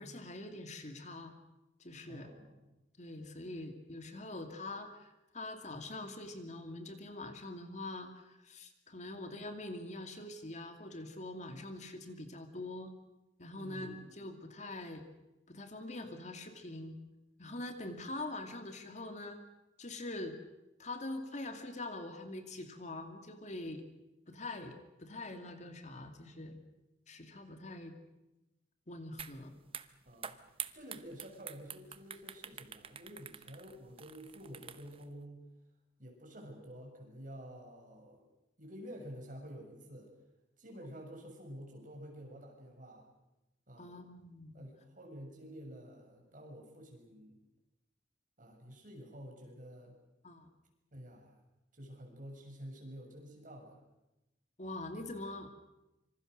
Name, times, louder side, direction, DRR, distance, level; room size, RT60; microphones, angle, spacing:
voice 1, 0.0-1.3 1.8-2.3 3.0-12.9 13.4-15.0 15.5-17.0 17.4-19.4 19.8-20.4 20.8-23.8 24.3-26.6 27.1-27.9 28.9-29.5 43.8-44.6 50.2-50.5 54.6-55.5, left 2 dB, 40° left, 6 dB, 2.4 m, -44 dB
voice 2, 2.1-2.6 13.5-14.1 30.1-30.3 30.7-35.4 36.0-38.2 38.6-40.1 40.6-43.1 43.7-44.0 44.5-47.4 48.4-50.0 50.9-51.4 51.7-53.8, equal, 45° right, 1 dB, 7.3 m, -50 dB
sound 1, 29.2-29.4 29.7-35.0, right 8 dB, 30° right, 1.0 m, -46 dB
26.0 x 25.0 x 6.6 m, 0.95 s
head